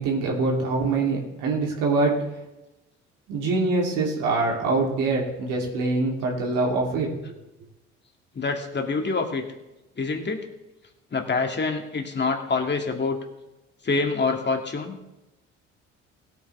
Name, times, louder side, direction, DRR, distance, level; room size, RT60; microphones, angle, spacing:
voice 1, 0.0-2.1 3.3-7.1, right 3 dB, 75° right, -2 dB, 3.0 m, -24 dB
voice 2, 8.4-9.4 10.0-10.4 11.1-13.2 13.8-15.0, left 4 dB, 35° left, 3 dB, 2.3 m, -26 dB
17.0 x 8.7 x 3.4 m, 0.97 s
supercardioid pair, 65°, 32 cm